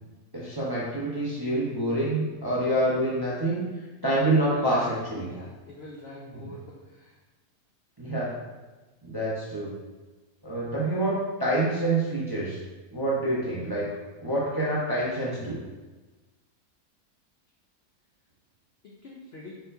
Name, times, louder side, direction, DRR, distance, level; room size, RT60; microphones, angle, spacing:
voice 1, 0.3-3.6 4.0-5.3 6.3-6.5 8.0-8.3 9.0-9.7 10.4-12.6 12.9-13.9 14.2-15.6, right 1 dB, 25° right, -6 dB, 0.5 m, -27 dB
voice 2, 4.4-4.9 5.3-7.1 18.8-19.6, left 2 dB, 65° left, -3 dB, 0.6 m, -43 dB
4.4 x 4.4 x 2.6 m, 1.2 s
omnidirectional pair, 1.7 m